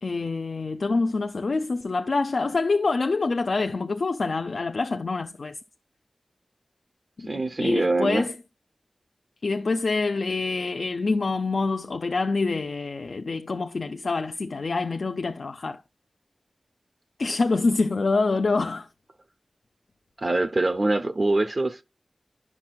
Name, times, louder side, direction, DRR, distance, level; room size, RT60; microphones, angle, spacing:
voice 1, 0.0-5.6 7.2-8.3 9.4-15.8 17.2-18.9, left 3 dB, 70° left, 0.4 m, -26 dB
voice 2, 7.3-8.3 20.2-21.8, right 2 dB, 45° right, 0.5 m, -24 dB
10.5 x 5.9 x 2.2 m
wide cardioid pair, 85°, 0 cm